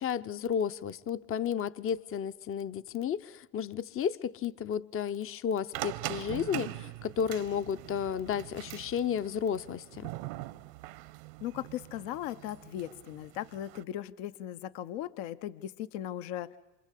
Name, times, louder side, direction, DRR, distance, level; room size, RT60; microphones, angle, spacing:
voice 1, 0.0-10.1, left 8 dB, 25° left, 0.8 m, -33 dB
sound 1, 5.7-13.8, right 18 dB, 60° right, 1.2 m, -42 dB
voice 2, 11.4-16.6, left 12 dB, 60° left, 1.1 m, -38 dB
27.0 x 25.5 x 8.4 m
hypercardioid pair, 85°, 49 cm